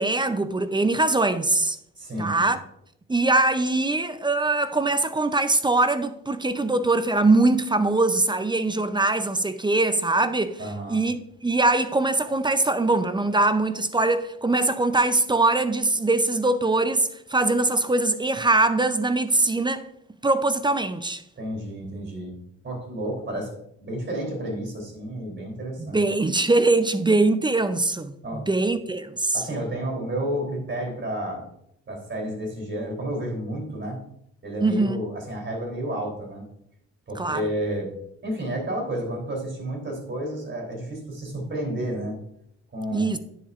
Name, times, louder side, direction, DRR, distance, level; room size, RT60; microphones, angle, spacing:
voice 1, 0.0-1.8 2.2-2.6 3.1-10.6 10.9-19.9 20.2-21.2 25.8-29.4 34.6-35.0 37.2-37.4 42.9-43.2, right 2 dB, 15° right, 0.5 m, -22 dB
voice 2, 2.0-2.4 10.6-11.0 21.4-22.3 22.6-23.5 23.8-26.0 28.2-28.5 29.3-31.4 31.9-34.0 34.4-36.4 37.1-37.9 38.2-42.2 42.7-43.1, right 1 dB, 40° right, 3.3 m, -31 dB
10.0 x 7.3 x 2.5 m
cardioid pair, 90°, 30 cm